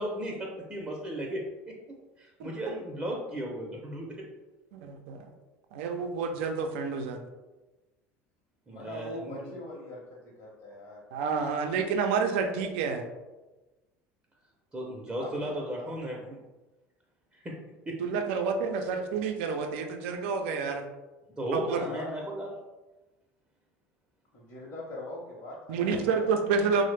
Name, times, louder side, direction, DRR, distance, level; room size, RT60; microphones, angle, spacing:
voice 1, 0.0-1.8 2.2-4.3 8.7-9.5 14.7-16.4 17.3-17.6 17.9-18.0 21.4-22.5, equal, 20° right, -2 dB, 0.5 m, -35 dB
voice 2, 2.4-2.7 4.7-5.3 5.7-7.2 11.1-13.0 18.0-20.8 21.5-21.8 25.7-26.8, right 5 dB, 80° right, 5 dB, 0.4 m, -29 dB
voice 3, 8.7-11.0 15.2-15.6 15.9-16.0 21.9-22.3 24.3-26.3, left 1 dB, 45° left, -6 dB, 0.8 m, -42 dB
3.1 x 2.0 x 3.2 m, 1.1 s
supercardioid pair, 95°, 6 cm